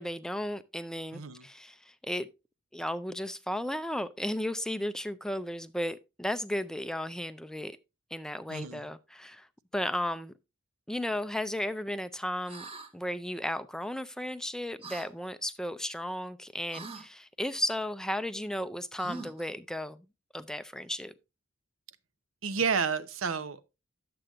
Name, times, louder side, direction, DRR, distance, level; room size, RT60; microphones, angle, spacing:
voice 1, 0.0-2.3 2.7-7.8 8.1-9.5 9.7-10.3 10.9-20.0 20.3-21.1, left 1 dB, 5° left, 0.4 m, -34 dB
voice 2, 1.1-1.5 8.5-8.9 22.4-23.7, right 5 dB, 85° right, 0.7 m, -31 dB
sound 1, 12.5-12.9 14.8-15.1 16.7-17.1 19.0-19.5, right 3 dB, 30° right, 1.4 m, -42 dB
11.5 x 7.7 x 2.4 m
head